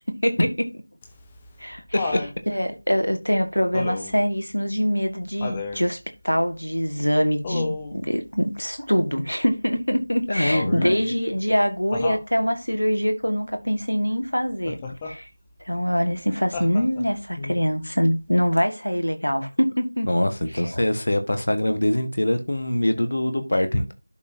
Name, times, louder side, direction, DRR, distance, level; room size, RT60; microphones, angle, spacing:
Laughter, 1.0-2.3 3.7-4.2 5.4-5.8 7.4-8.0 10.5-11.0 11.9-12.3 14.6-15.1 16.5-17.2 18.6-18.7, left 4 dB, 10° left, 0.8 m, -31 dB
voice 1, 2.5-6.0 6.2-14.8 15.0-15.3 15.7-20.1 20.6-20.8, equal, 85° left, 1.9 m, -24 dB
voice 2, 10.3-11.0 17.4-17.6 20.0-23.9, left 1 dB, 50° left, 1.5 m, -23 dB
11.5 x 5.4 x 2.8 m
figure-of-eight pair, 170°, 0 cm